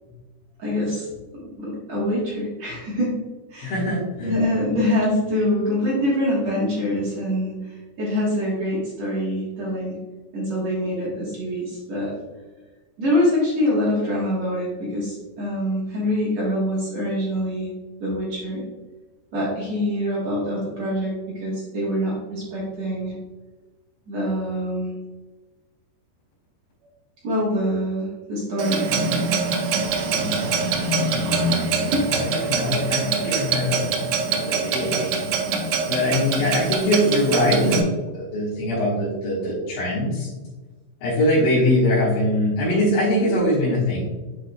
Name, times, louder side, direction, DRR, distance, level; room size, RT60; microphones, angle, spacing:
voice 1, 0.6-1.1 1.3-3.1 3.5-3.8 4.2-10.0 10.3-12.1 13.0-17.7 18.0-18.6 19.3-21.1 21.4-23.1 24.1-24.9 27.2-28.9 31.9-32.0, left 1 dB, 60° right, -6 dB, 1.9 m, -24 dB
voice 2, 3.6-4.3 30.1-31.2 32.1-33.8 34.3-35.3 35.9-37.8 38.1-40.3 41.0-44.1, left 1 dB, 60° left, -10 dB, 2.9 m, -22 dB
Clock, 28.6-37.8, right 4 dB, 85° right, 3.0 m, -24 dB
8.3 x 5.0 x 2.3 m, 1.2 s
omnidirectional pair, 5.0 m